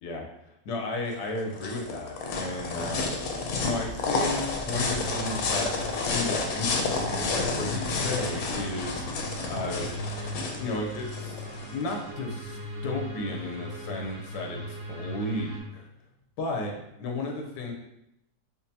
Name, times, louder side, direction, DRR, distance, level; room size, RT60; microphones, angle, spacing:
voice 1, 0.6-3.1 3.6-9.9 10.6-11.4 11.7-15.9 16.4-16.7 17.0-17.7, left 2 dB, 90° left, 1 dB, 1.3 m, -34 dB
sound 1, 1.1-12.0, left 3 dB, 70° left, 1.0 m, -30 dB
sound 2, 4.6-15.6, left 1 dB, 60° right, 1.0 m, -38 dB
5.2 x 2.1 x 2.7 m, 0.83 s
omnidirectional pair, 1.8 m